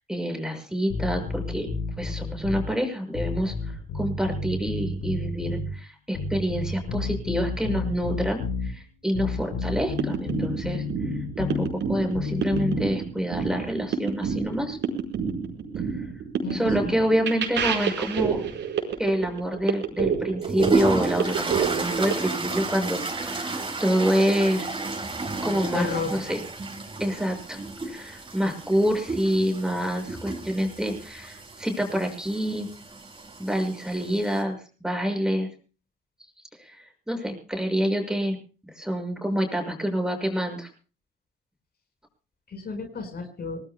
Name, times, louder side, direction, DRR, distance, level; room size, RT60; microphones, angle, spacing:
voice 1, 0.1-1.7 2.0-10.8 11.4-14.8 15.9-16.1 16.5-18.4 19.0-24.7 25.4-26.4 27.0-27.6 27.8-32.7 33.4-35.5 36.6-38.4 38.7-40.7, equal, 5° right, 4 dB, 6.5 m, -27 dB
sound 1, 0.9-2.7 3.1-5.8 6.1-8.7 9.1-11.7 12.1-12.8, left 4 dB, 90° left, 5.3 m, -31 dB
sound 2, 9.7-22.1, right 7 dB, 70° right, 5.1 m, -29 dB
voice 2, 16.4-16.9 25.4-26.2 42.5-43.6, left 4 dB, 55° left, 5 dB, 5.1 m, -32 dB
sound 3, 20.4-34.4, right 3 dB, 25° right, 5.4 m, -32 dB
25.0 x 19.5 x 2.3 m, 0.37 s
cardioid pair, 90°, 20 cm